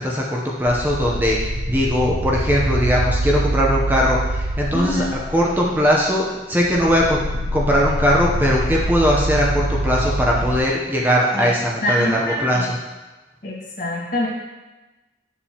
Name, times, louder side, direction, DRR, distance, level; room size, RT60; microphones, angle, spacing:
voice 1, 0.0-7.2 7.5-12.8, equal, 10° right, -3 dB, 0.8 m, -20 dB
sound 1, 0.7-6.2 6.6-10.6, right 1 dB, 50° right, 0.6 m, -25 dB
voice 2, 4.7-5.1 11.3-11.5 11.8-12.7 13.4-14.3, left 1 dB, 50° left, -4 dB, 1.8 m, -25 dB
8.9 x 7.1 x 2.9 m, 1.1 s
head